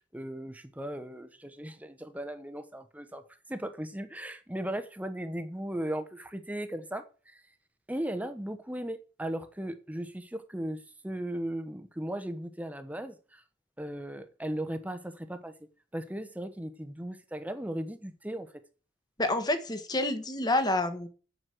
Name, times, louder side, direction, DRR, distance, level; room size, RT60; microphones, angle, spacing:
voice 1, 0.0-3.2 3.5-7.4 7.9-13.4 13.8-15.5 15.9-18.5, right 1 dB, 10° right, 0.9 m, -37 dB
voice 2, 19.2-21.1, left 2 dB, 20° left, 1.4 m, -28 dB
7.9 x 6.2 x 7.6 m
head